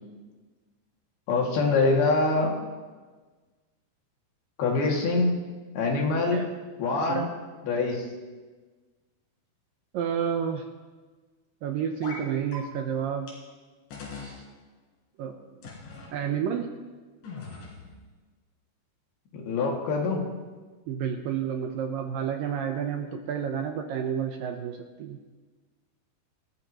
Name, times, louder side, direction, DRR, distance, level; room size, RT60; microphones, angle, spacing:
voice 1, 1.3-2.6 4.6-5.4 5.8-6.4 6.8-7.3 7.6-8.1 19.3-20.3, left 3 dB, 65° left, -1 dB, 4.0 m, -24 dB
voice 2, 6.1-6.5 7.1-7.3 9.9-10.7 11.6-13.3 14.1-14.4 15.2-15.4 16.1-16.7 20.9-25.2, right 8 dB, 80° right, 4 dB, 2.0 m, -30 dB
sound 1, 12.0-12.2 12.5-12.6 13.3-13.4 13.9-14.4 15.6-16.1 17.2-18.0, left 3 dB, 90° left, 5.9 m, -40 dB
26.5 x 13.0 x 3.0 m, 1.3 s
omnidirectional pair, 5.1 m